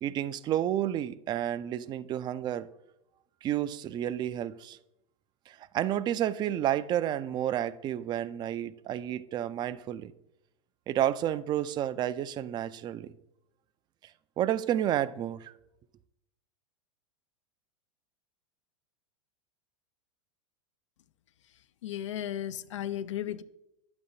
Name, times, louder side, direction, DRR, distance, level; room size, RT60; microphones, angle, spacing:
voice 1, 0.0-2.7 3.4-4.8 5.5-10.1 10.9-13.1 14.4-15.5, right 11 dB, 25° right, 0.4 m, -30 dB
voice 2, 21.8-23.4, left 11 dB, 70° left, 0.4 m, -35 dB
10.0 x 7.0 x 2.7 m
hypercardioid pair, 95°, 16 cm